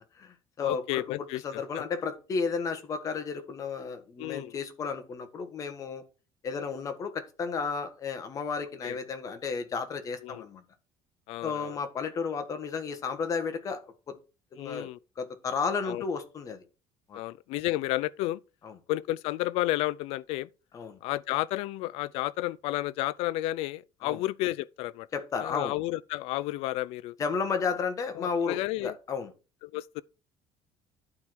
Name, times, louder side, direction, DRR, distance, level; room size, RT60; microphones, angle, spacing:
voice 1, 0.0-1.0 1.4-6.0 6.4-10.6 11.4-14.1 14.5-14.9 15.2-16.6 17.1-17.2 18.6-18.8 20.7-21.0 24.0-24.2 25.1-25.7 27.2-29.3, left 5 dB, 35° left, 1.6 m, -33 dB
voice 2, 0.6-1.8 4.2-4.5 8.8-9.0 10.2-10.5 11.3-11.8 14.6-15.0 15.9-16.0 17.1-18.4 18.9-20.5 21.0-25.1 25.4-27.1 28.2-29.0 29.6-30.0, left 17 dB, 75° left, 0.5 m, -32 dB
11.5 x 4.8 x 4.5 m
cardioid pair, 150°, 10 cm